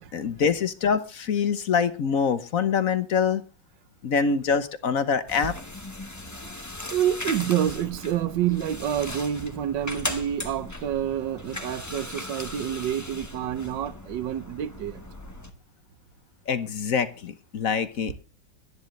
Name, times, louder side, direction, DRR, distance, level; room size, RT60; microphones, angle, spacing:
voice 1, 0.0-3.4 4.0-5.6 16.5-18.2, left 6 dB, 55° left, 1.2 m, -25 dB
sound 1, 5.3-15.5, left 1 dB, 10° left, 0.9 m, -38 dB
voice 2, 6.9-15.0, right 10 dB, 70° right, 1.5 m, -28 dB
22.0 x 10.0 x 3.2 m
omnidirectional pair, 2.1 m